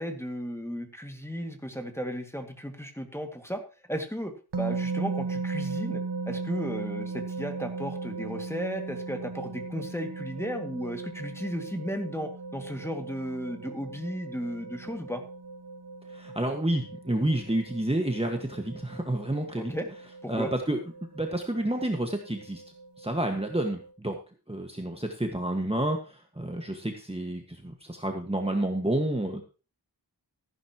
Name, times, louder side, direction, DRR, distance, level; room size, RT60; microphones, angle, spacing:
voice 1, 0.0-3.6 3.9-15.2 19.6-19.9 20.2-20.5, equal, 5° left, 4 dB, 2.1 m, -35 dB
sound 1, 4.5-23.9, right 4 dB, 85° right, 1.1 m, -38 dB
voice 2, 16.1-19.7 20.3-20.8 21.1-22.6 23.0-24.2 24.5-29.4, right 1 dB, 15° right, 3 dB, 1.6 m, -29 dB
14.5 x 11.0 x 3.0 m, 0.34 s
wide cardioid pair, 50°, 40 cm